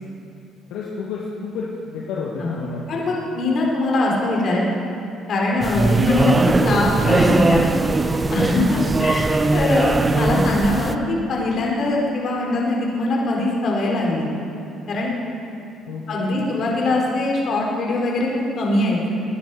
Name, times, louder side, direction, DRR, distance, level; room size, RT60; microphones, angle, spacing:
voice 1, 0.7-2.8 8.4-8.6 15.9-16.4, left 4 dB, 80° left, -5 dB, 1.9 m, -31 dB
voice 2, 2.9-4.7 5.3-7.7 8.3-14.2 14.9-15.1 16.1-19.1, left 2 dB, 55° left, -2 dB, 4.2 m, -22 dB
sound 1, 5.6-10.9, right 3 dB, 25° right, 0.8 m, -20 dB
20.5 x 10.5 x 5.0 m, 2.8 s
supercardioid pair, 65°, 0 cm